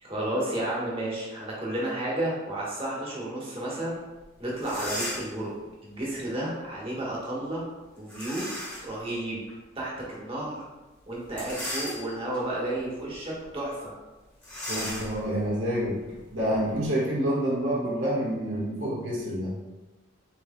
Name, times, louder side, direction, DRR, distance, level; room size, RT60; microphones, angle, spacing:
voice 1, 0.0-4.0 4.4-5.5 5.8-7.7 7.9-8.5 8.8-9.4 9.7-10.6 11.1-13.9, right 1 dB, 30° right, -5 dB, 1.4 m, -32 dB
sound 1, 4.2-4.3 4.6-5.4 8.1-9.0 9.5-9.6 11.2-12.4 12.9-13.2 13.4-13.5 14.4-16.9, equal, 10° left, 1.5 m, -36 dB
voice 2, 14.7-16.0 16.3-19.5, equal, 80° right, -7 dB, 1.4 m, -28 dB
7.3 x 3.2 x 2.2 m, 1.1 s
head